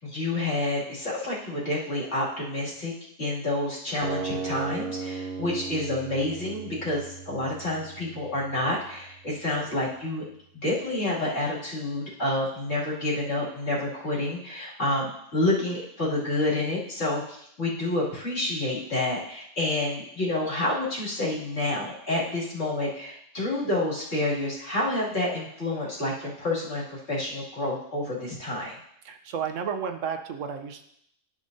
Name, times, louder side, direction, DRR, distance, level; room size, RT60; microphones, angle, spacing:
voice 1, 0.0-2.9 3.2-10.2 10.6-28.7, left 2 dB, 60° left, -7 dB, 2.8 m, -29 dB
sound 1, 4.0-10.0, right 5 dB, 55° right, 0.9 m, -37 dB
voice 2, 29.0-30.8, right 7 dB, 80° right, 6 dB, 1.1 m, -32 dB
12.0 x 6.2 x 2.7 m, 0.72 s
omnidirectional pair, 1.3 m